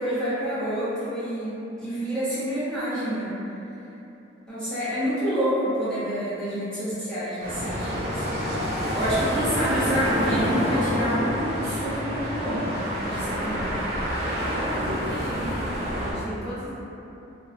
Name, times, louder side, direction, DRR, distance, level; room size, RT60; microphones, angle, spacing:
voice 1, 0.0-3.4 4.5-8.5 8.9-12.7 13.0-13.8, equal, 5° left, -13 dB, 0.5 m, -28 dB
sound 1, 7.4-16.1, equal, 35° right, 0.6 m, -28 dB
voice 2, 14.5-16.7, equal, 75° right, -12 dB, 0.6 m, -36 dB
3.3 x 2.0 x 2.4 m, 2.9 s
head